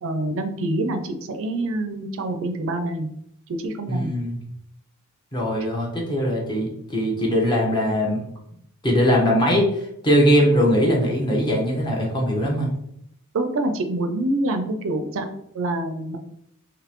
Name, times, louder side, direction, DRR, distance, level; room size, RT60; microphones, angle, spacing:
voice 1, 0.0-3.1 3.6-4.1 13.3-15.3 15.5-16.2, right 2 dB, 65° right, 7 dB, 0.5 m, -26 dB
voice 2, 3.9-4.5 5.3-8.2 8.8-12.7, equal, 20° left, -2 dB, 1.0 m, -21 dB
4.0 x 3.0 x 3.0 m, 0.74 s
head